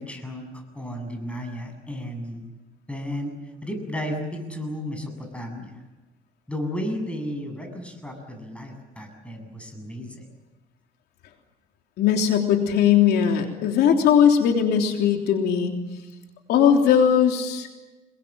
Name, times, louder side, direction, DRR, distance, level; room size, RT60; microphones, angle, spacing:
voice 1, 0.0-2.4 2.9-3.3 3.6-5.8 6.5-10.3, equal, 5° left, 5 dB, 7.5 m, -33 dB
voice 2, 12.0-15.7 16.5-17.7, left 8 dB, 75° left, 3 dB, 3.4 m, -19 dB
28.0 x 23.0 x 7.7 m, 1.1 s
cardioid pair, 110°, 17 cm